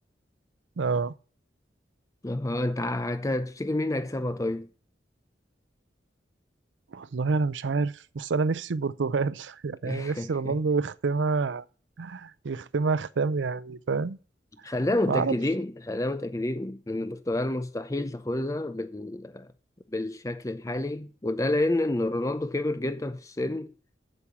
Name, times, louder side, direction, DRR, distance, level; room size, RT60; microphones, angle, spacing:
voice 1, 0.8-1.1 6.9-11.6 12.0-14.2 15.1-15.4, right 4 dB, 90° right, 0.5 m, -28 dB
voice 2, 2.2-4.7 9.8-10.6 14.6-19.5 19.9-23.7, left 1 dB, 20° left, 0.5 m, -29 dB
8.2 x 7.4 x 7.1 m
head